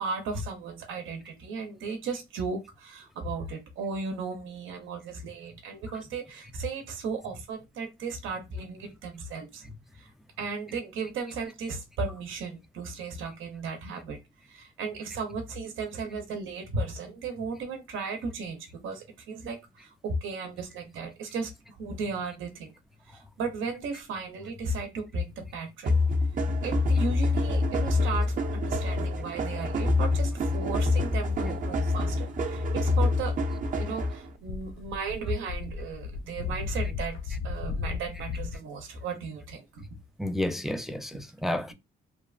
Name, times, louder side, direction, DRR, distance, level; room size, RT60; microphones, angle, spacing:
voice 1, 0.0-9.6 9.9-10.1 10.4-14.2 14.4-22.7 23.0-26.0 26.3-33.4 33.8-39.9 41.1-41.2, right 4 dB, 85° right, 0.7 m, -35 dB
sound 1, 25.9-34.3, left 2 dB, 40° right, 0.6 m, -26 dB
sound 2, 33.5-34.0 34.4-38.6, left 5 dB, 85° left, 0.4 m, -35 dB
voice 2, 40.2-41.7, left 1 dB, ahead, 0.3 m, -31 dB
3.0 x 2.2 x 2.3 m
cardioid pair, 90°, 20 cm